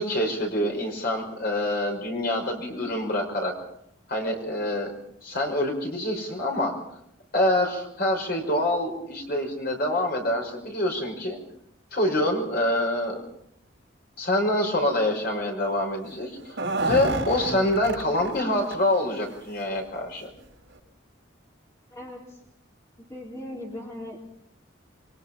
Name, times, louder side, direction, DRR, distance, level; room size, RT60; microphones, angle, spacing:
voice 1, 0.0-3.5 4.1-4.9 5.2-6.7 7.3-11.4 11.9-13.2 14.2-16.4 16.8-20.3, left 1 dB, 50° left, 1 dB, 5.5 m, -26 dB
sound 1, 16.4-18.4 18.7-18.8 19.2-19.4 20.3-20.4 20.7-20.8, right 2 dB, 60° right, 5.8 m, -29 dB
voice 2, 21.9-22.4 23.0-24.2, left 1 dB, 15° left, -3 dB, 3.8 m, -39 dB
27.5 x 23.0 x 4.3 m, 0.73 s
head